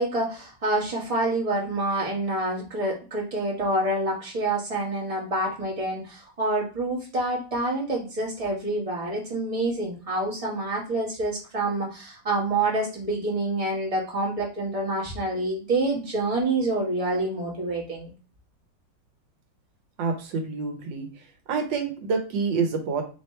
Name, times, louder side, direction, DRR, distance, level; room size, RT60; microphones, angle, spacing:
voice 1, 0.0-18.1, right 2 dB, 20° right, -4 dB, 1.5 m, -27 dB
voice 2, 20.0-21.1 21.5-23.0, right 5 dB, 80° right, 4 dB, 1.6 m, -27 dB
3.4 x 3.2 x 4.3 m, 0.36 s
omnidirectional pair, 2.0 m